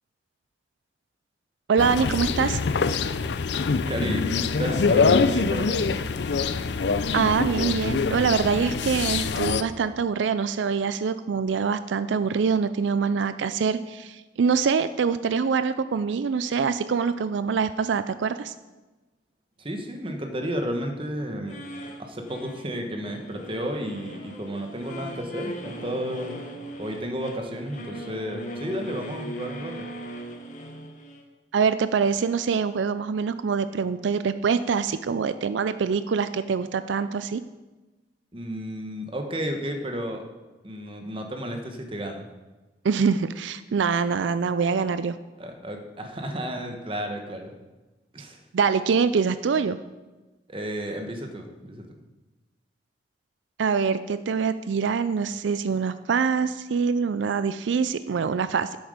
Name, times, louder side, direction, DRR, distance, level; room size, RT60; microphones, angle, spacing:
voice 1, 1.7-2.6 7.1-18.5 31.5-37.4 42.8-45.1 48.5-49.8 53.6-58.8, right 5 dB, 90° right, 13 dB, 0.4 m, -24 dB
sound 1, 1.8-9.6, left 4 dB, 70° left, 0.5 m, -24 dB
voice 2, 3.9-5.9 19.6-21.6 22.0-26.4 26.8-29.8 38.3-40.2 40.6-42.3 45.4-47.5 48.1-48.4 50.5-51.8, equal, 30° right, 4 dB, 1.2 m, -32 dB
sound 2, 21.4-31.2, equal, 45° left, 1.3 m, -39 dB
10.5 x 7.9 x 5.0 m, 1.1 s
head